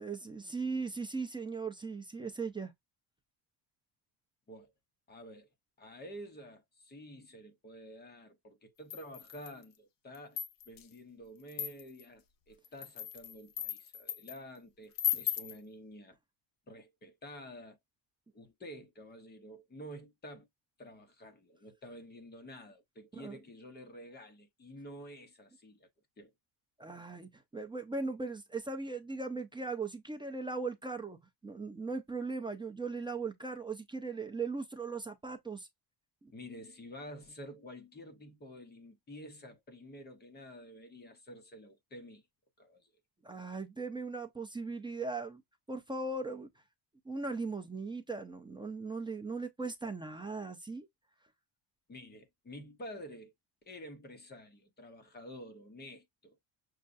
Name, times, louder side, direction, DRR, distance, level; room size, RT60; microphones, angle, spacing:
voice 1, 0.0-2.7 23.1-23.4 26.8-31.2 31.4-35.7 36.2-36.3 43.2-45.4 45.7-46.5 47.1-50.9, right 4 dB, 10° right, 0.3 m, -38 dB
voice 2, 5.1-5.5 5.8-16.2 16.7-17.8 18.3-20.5 20.8-25.9 26.2-26.3 36.3-42.2 42.6-42.9 51.9-53.3 53.6-56.4, equal, 20° left, 0.8 m, -50 dB
sound 1, 8.9-9.6 10.1-10.8 11.5-12.0 12.6-14.4 15.0-15.6, left 10 dB, 45° left, 0.6 m, -36 dB
6.4 x 2.3 x 2.5 m
cardioid pair, 175°, 48 cm